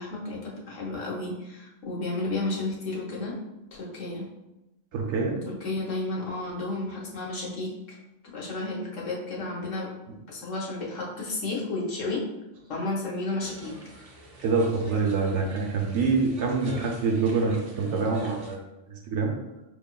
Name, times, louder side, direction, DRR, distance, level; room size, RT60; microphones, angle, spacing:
voice 1, 0.0-3.4 3.8-4.3 5.5-7.7 8.3-9.9 10.3-12.2 12.7-13.8, left 2 dB, 70° left, -3 dB, 1.2 m, -32 dB
voice 2, 4.9-5.4 14.4-18.6 18.9-19.3, right 4 dB, 65° right, 0 dB, 0.8 m, -26 dB
sound 1, 13.4-18.5, equal, 50° right, 0.4 m, -43 dB
5.1 x 3.0 x 2.2 m, 0.97 s
omnidirectional pair, 1.4 m